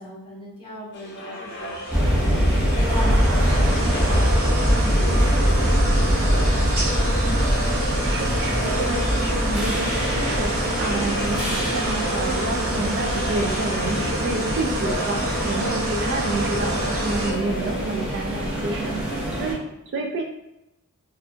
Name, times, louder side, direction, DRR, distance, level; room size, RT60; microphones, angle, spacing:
voice 1, 0.0-6.9 7.1-7.4, equal, 25° left, -6 dB, 1.3 m, -37 dB
sound 1, 0.9-18.8, equal, 50° left, 0.7 m, -36 dB
sound 2, 1.5-17.3, right 1 dB, 75° right, 1.3 m, -28 dB
sound 3, 1.9-19.5, equal, 5° right, 0.9 m, -23 dB
voice 2, 7.8-20.2, right 2 dB, 50° right, 2 dB, 0.4 m, -29 dB
4.1 x 2.6 x 2.8 m, 0.87 s
head